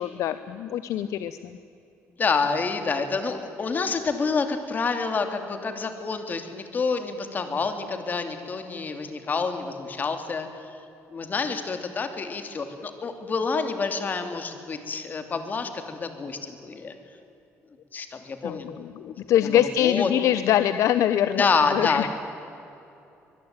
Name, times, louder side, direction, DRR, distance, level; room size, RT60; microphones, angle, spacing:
voice 1, 0.0-1.5 18.4-22.1, left 11 dB, 70° left, 12 dB, 0.9 m, -24 dB
voice 2, 2.2-10.5 11.1-16.9 17.9-18.7 19.4-20.1 21.4-22.1, left 4 dB, 35° left, 7 dB, 3.0 m, -28 dB
23.5 x 22.0 x 9.1 m, 2.8 s
cardioid pair, 125°, 5 cm